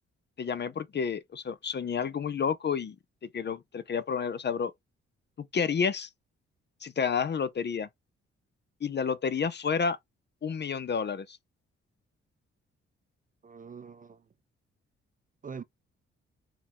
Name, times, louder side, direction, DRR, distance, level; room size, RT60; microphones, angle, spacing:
voice 1, 0.4-3.0 3.2-4.7 5.4-6.1 6.8-7.9 8.8-10.0 10.4-11.4, left 6 dB, 35° left, 0.6 m, -30 dB
voice 2, 13.4-14.3 15.4-15.6, right 6 dB, 25° right, 0.5 m, -44 dB
3.8 x 3.0 x 2.9 m
hypercardioid pair, 40°, 30 cm